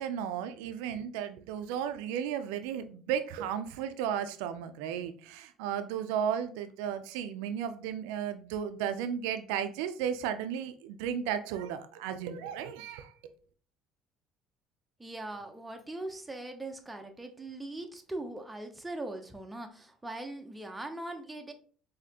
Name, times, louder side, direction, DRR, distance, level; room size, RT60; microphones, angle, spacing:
voice 1, 0.0-13.3, right 9 dB, 90° right, 10 dB, 0.4 m, -34 dB
voice 2, 15.0-21.5, right 2 dB, 10° right, 4 dB, 0.6 m, -40 dB
4.1 x 2.7 x 2.8 m, 0.42 s
supercardioid pair, 95°, 0 cm